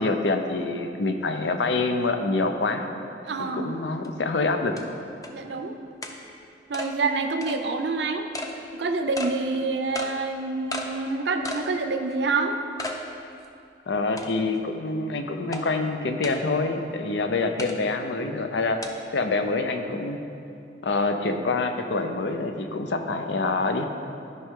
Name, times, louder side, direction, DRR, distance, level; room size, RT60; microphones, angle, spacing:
voice 1, 0.0-2.9 3.5-4.8 13.9-18.8 19.1-20.2 20.8-23.9, left 3 dB, 80° left, 6 dB, 0.6 m, -26 dB
voice 2, 3.2-3.7 5.3-5.8 6.7-8.3 8.7-12.6, right 3 dB, 70° right, 6 dB, 0.6 m, -27 dB
sound 1, 4.0-4.1 4.8-4.9 5.2-5.3 6.0-6.2 6.7-6.9 7.4-7.6 8.3-8.5 9.2-9.3 9.9-10.1 10.7-10.9 11.4-11.7 12.1-12.2 12.8-13.0 13.4-13.5 14.2-14.6 15.5-15.6 16.2-16.4 17.6-17.8 18.8-18.9, left 1 dB, 20° left, 0.6 m, -33 dB
12.5 x 5.6 x 3.7 m, 2.6 s
head